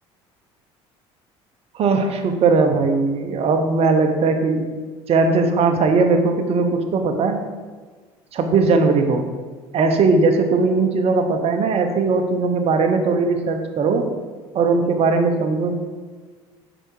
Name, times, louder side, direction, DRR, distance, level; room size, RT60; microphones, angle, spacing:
voice 1, 1.7-4.7 5.1-7.5 8.3-9.3 9.7-14.1 14.5-15.8, right 4 dB, 50° right, 5 dB, 1.0 m, -19 dB
6.5 x 5.0 x 4.6 m, 1.4 s
supercardioid pair, 80°, 13 cm